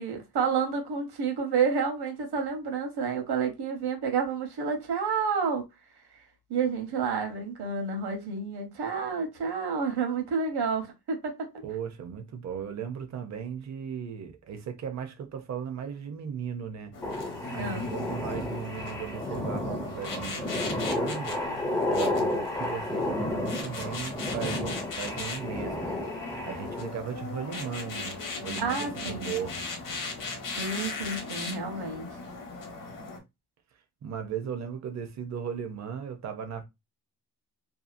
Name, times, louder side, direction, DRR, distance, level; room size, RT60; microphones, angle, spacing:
voice 1, 0.0-5.6 6.5-11.5 17.6-17.9 28.6-29.3 30.6-32.1, right 5 dB, 70° right, 1.0 m, -29 dB
voice 2, 11.6-17.0 17.5-21.4 21.9-25.9 26.4-29.6 34.0-36.6, right 7 dB, 40° right, 0.5 m, -37 dB
sound 1, 16.9-33.2, left 3 dB, 50° left, 0.8 m, -38 dB
sound 2, 17.0-26.9, left 1 dB, 10° left, 0.4 m, -32 dB
2.8 x 2.3 x 2.5 m
wide cardioid pair, 170°, 41 cm